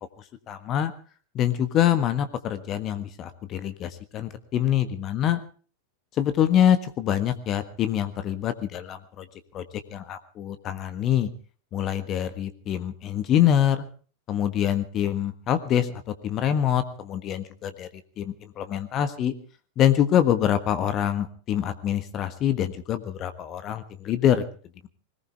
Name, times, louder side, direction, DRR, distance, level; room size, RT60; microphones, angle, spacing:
voice 1, 0.5-0.9 1.3-5.4 6.2-9.3 9.5-9.6 9.9-11.3 11.7-13.8 14.3-17.9 18.2-19.3 19.8-24.4, left 10 dB, 30° left, 11 dB, 1.5 m, -25 dB
21.0 x 19.5 x 3.5 m, 0.40 s
figure-of-eight pair, 90°, 0 cm